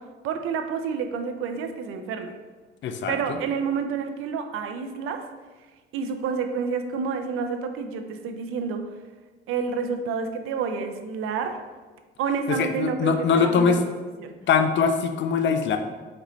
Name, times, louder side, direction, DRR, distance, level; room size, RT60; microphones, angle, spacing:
voice 1, 0.2-2.3 3.1-5.2 5.9-8.8 9.5-11.6 12.2-13.8 14.2-14.3, right 6 dB, 90° right, 6 dB, 0.5 m, -29 dB
voice 2, 2.8-3.4 12.5-13.8 14.5-15.8, left 6 dB, 60° left, 7 dB, 0.5 m, -22 dB
4.2 x 3.0 x 3.9 m, 1.3 s
cardioid pair, 95°, 21 cm